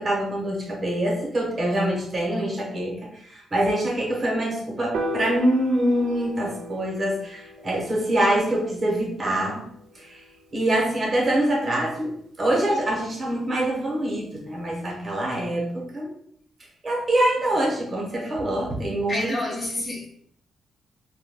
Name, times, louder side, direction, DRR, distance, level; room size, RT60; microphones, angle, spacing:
voice 1, 0.0-9.7 9.9-10.2 10.5-16.1 16.8-19.4, right 1 dB, 25° right, 0.8 m, -25 dB
Piano, 4.9-11.2, equal, 85° right, 0.4 m, -37 dB
voice 2, 19.1-20.1, left 2 dB, 25° left, 0.5 m, -29 dB
2.2 x 2.1 x 3.2 m
wide cardioid pair, 145°, 0 cm